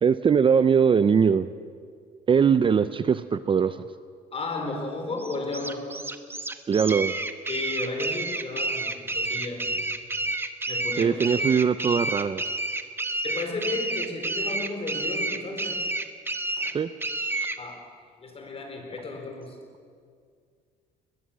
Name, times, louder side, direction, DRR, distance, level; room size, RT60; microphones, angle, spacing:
voice 1, 0.0-1.5 2.3-3.8 6.7-7.2 11.0-12.4 16.7-16.9 17.2-17.5, right 6 dB, 30° right, 12 dB, 0.6 m, -21 dB
voice 2, 4.3-6.0 7.5-9.8 10.7-11.5 13.2-15.9 16.6-16.8 17.6-17.9 18.2-19.6, left 3 dB, 35° left, 4 dB, 4.8 m, -34 dB
sound 1, 5.2-17.6, right 2 dB, 15° right, 1.2 m, -30 dB
21.0 x 21.0 x 7.6 m, 2.1 s
cardioid pair, 110°, 17 cm